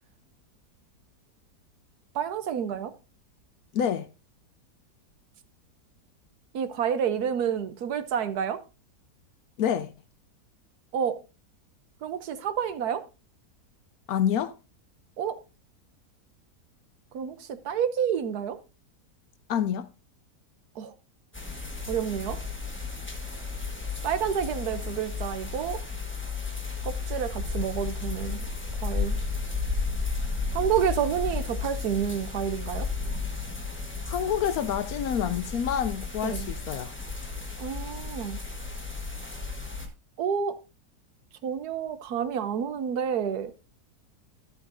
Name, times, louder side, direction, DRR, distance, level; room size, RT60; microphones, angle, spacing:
voice 1, 2.1-2.9 6.5-8.6 10.9-11.2 12.0-13.0 15.2-15.4 17.1-18.6 20.8-20.9 21.9-22.4 24.0-25.8 26.8-28.4 28.8-29.2 30.5-32.9 36.2-36.5 37.6-38.4 40.2-40.6 41.4-43.5, right 8 dB, 70° right, 1.3 m, -29 dB
voice 2, 3.7-4.1 9.6-9.9 14.1-14.5 19.5-19.9 34.1-36.9, left 9 dB, 70° left, 1.0 m, -27 dB
sound 1, 21.3-39.9, left 4 dB, 10° left, 1.2 m, -33 dB
12.5 x 8.0 x 2.6 m
omnidirectional pair, 1.8 m